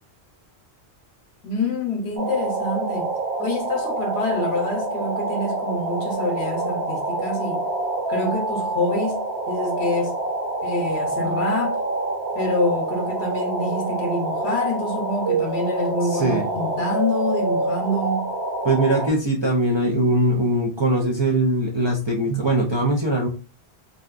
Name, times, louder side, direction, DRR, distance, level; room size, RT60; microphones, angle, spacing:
voice 1, 1.4-3.1 3.4-7.6 8.1-10.2 10.6-11.8 12.3-18.3, left 2 dB, 75° left, 0.9 m, -26 dB
sound 1, 2.2-19.1, right 2 dB, 65° right, 0.9 m, -26 dB
voice 2, 16.0-16.5 18.6-23.3, right 1 dB, 45° right, 0.3 m, -21 dB
2.6 x 2.2 x 2.3 m
omnidirectional pair, 1.1 m